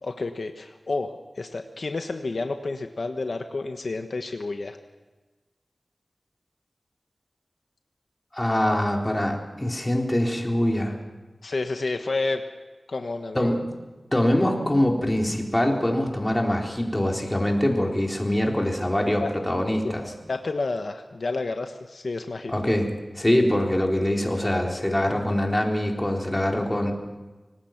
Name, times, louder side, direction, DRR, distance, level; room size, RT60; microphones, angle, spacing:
voice 1, 0.0-4.8 11.4-12.4 12.9-13.6 19.2-19.3 19.8-19.9 20.3-22.5, left 3 dB, 75° left, 6 dB, 1.2 m, -30 dB
voice 2, 8.3-11.0 13.3-13.6 14.1-20.0 22.5-22.9 23.2-26.9, left 1 dB, 20° left, 1 dB, 3.9 m, -24 dB
25.0 x 19.0 x 5.9 m, 1.2 s
wide cardioid pair, 70°, 0 cm